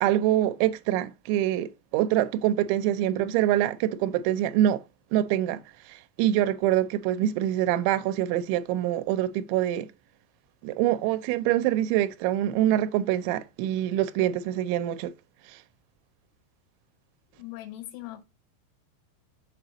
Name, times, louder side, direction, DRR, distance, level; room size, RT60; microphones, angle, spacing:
voice 1, 0.0-4.8 5.1-5.6 5.9-9.9 10.6-15.1 15.5-15.6, right 12 dB, 85° right, 2.7 m, -25 dB
voice 2, 7.2-7.5 17.3-18.2, left 15 dB, 80° left, 3.7 m, -41 dB
6.7 x 4.7 x 4.0 m
omnidirectional pair, 5.9 m